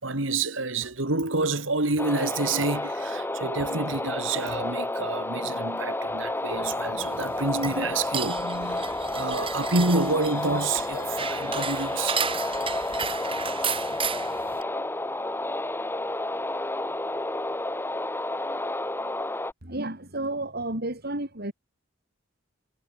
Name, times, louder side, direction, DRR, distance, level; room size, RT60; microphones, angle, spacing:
voice 1, 0.0-12.2, right 3 dB, 80° right, 3.3 m, -28 dB
sound 1, 2.0-19.5, left 2 dB, 10° left, 1.6 m, -31 dB
sound 2, 7.0-14.6, right 6 dB, 30° right, 2.0 m, -34 dB
voice 2, 19.6-21.5, right 2 dB, 55° right, 5.8 m, -31 dB
head